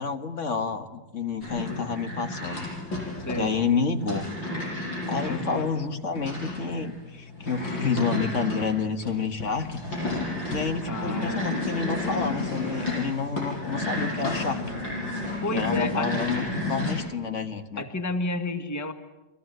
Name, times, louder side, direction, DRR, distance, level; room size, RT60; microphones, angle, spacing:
voice 1, 0.0-2.7 3.3-4.3 5.1-9.8 10.5-14.6 15.5-17.8, left 5 dB, 45° left, 8 dB, 1.8 m, -29 dB
sound 1, 1.4-16.9, left 2 dB, 85° left, 8.6 m, -32 dB
voice 2, 5.2-5.7 10.9-11.4 15.4-16.1 17.8-18.9, left 2 dB, 10° left, 7 dB, 1.4 m, -30 dB
29.5 x 22.0 x 8.0 m, 1.1 s
omnidirectional pair, 2.0 m